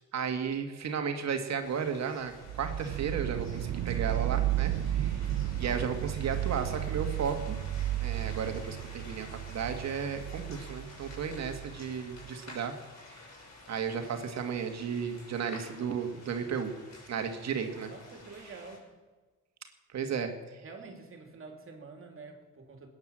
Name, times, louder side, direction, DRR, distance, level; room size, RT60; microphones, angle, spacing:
voice 1, 0.1-2.3 2.6-7.6 8.0-12.7 13.1-13.2 13.7-16.7 17.1-17.9 19.9-20.3, right 6 dB, 60° right, 5 dB, 2.0 m, -34 dB
sound 1, 1.6-18.8, left 2 dB, 65° left, 6.9 m, -51 dB
sound 2, 2.4-12.3, right 13 dB, 80° right, 0.7 m, -33 dB
voice 2, 17.9-18.8 20.2-20.3 20.6-22.9, right 4 dB, 45° right, 3 dB, 3.1 m, -47 dB
20.0 x 9.6 x 7.6 m, 1.3 s
cardioid pair, 90°, 30 cm